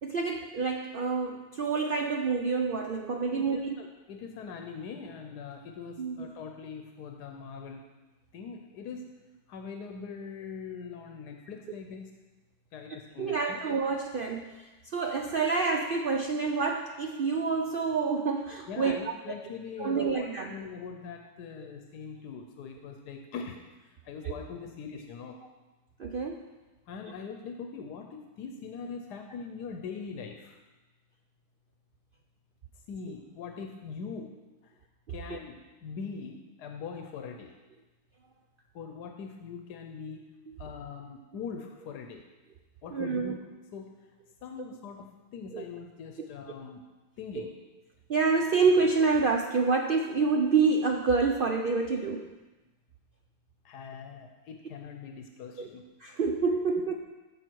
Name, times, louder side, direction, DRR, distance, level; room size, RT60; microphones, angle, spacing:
voice 1, 0.0-3.7 6.0-6.3 13.2-19.0 19.8-20.5 24.2-24.3 26.0-26.5 35.3-35.4 42.9-43.4 45.5-45.6 47.4-47.5 48.1-52.3 55.6-55.7 56.0-57.0, right 4 dB, 90° right, 3 dB, 0.4 m, -27 dB
voice 2, 3.3-7.8 8.3-9.1 9.5-12.2 12.7-13.6 18.7-23.6 24.0-25.4 26.9-30.6 32.9-34.7 35.1-37.5 38.7-40.2 40.6-42.2 42.8-43.4 43.7-43.9 44.4-46.8 47.2-47.5 53.6-55.8, left 5 dB, 90° left, 4 dB, 1.3 m, -42 dB
14.5 x 5.7 x 4.6 m, 1.2 s
omnidirectional pair, 1.7 m